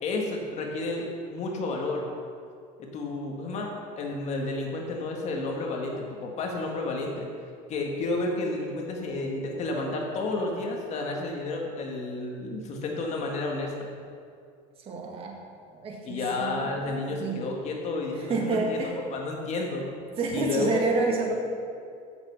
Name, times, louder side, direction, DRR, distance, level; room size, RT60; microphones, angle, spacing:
voice 1, 0.0-2.0 2.8-7.3 7.7-13.9 16.0-18.8 19.1-19.9 20.3-21.1, left 2 dB, 40° left, 0 dB, 1.7 m, -31 dB
voice 2, 14.8-15.4 15.7-17.4 18.1-19.0 20.2-21.3, right 3 dB, 30° right, 0 dB, 1.8 m, -29 dB
15.0 x 6.9 x 5.7 m, 2.3 s
cardioid pair, 150°, 18 cm